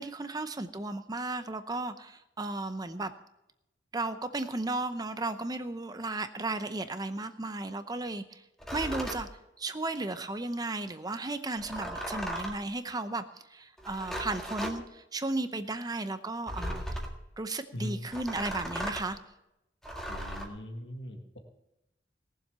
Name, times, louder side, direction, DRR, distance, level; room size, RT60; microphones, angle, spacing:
voice 1, 0.0-3.1 3.9-8.4 8.7-9.3 9.6-13.2 13.5-17.0 17.4-19.2, right 2 dB, 20° right, 10 dB, 0.7 m, -34 dB
sound 1, 8.6-9.2 11.6-12.6 13.8-14.8 16.5-17.2 18.1-19.1 19.8-20.5, equal, 5° left, 1.8 m, -37 dB
voice 2, 20.1-21.4, left 1 dB, 70° left, 3 dB, 1.7 m, -39 dB
18.5 x 7.4 x 6.8 m, 0.88 s
head